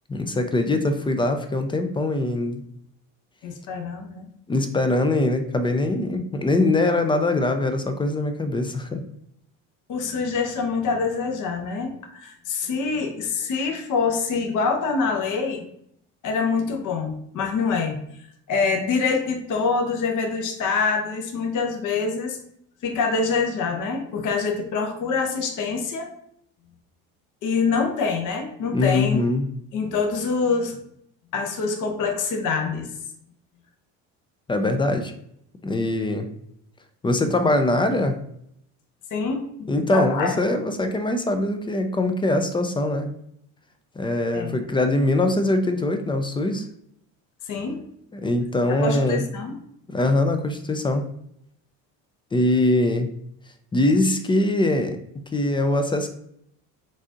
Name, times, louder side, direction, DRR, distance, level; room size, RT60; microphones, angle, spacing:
voice 1, 0.1-2.6 4.5-9.0 28.7-29.5 34.5-35.1 35.6-36.3 37.0-38.2 39.7-43.1 44.0-46.7 48.1-49.2 49.9-51.1 52.3-53.1 53.7-55.0 55.3-56.1, left 2 dB, 15° left, 7 dB, 0.3 m, -22 dB
voice 2, 3.4-4.3 9.9-15.6 16.2-18.0 18.5-22.4 22.8-26.1 27.4-29.2 29.7-30.8 31.3-32.9 39.1-40.3 44.3-44.6 47.5-47.8 48.7-49.6, left 4 dB, 50° left, 4 dB, 0.9 m, -25 dB
3.9 x 2.5 x 3.7 m, 0.71 s
supercardioid pair, 85°, 39 cm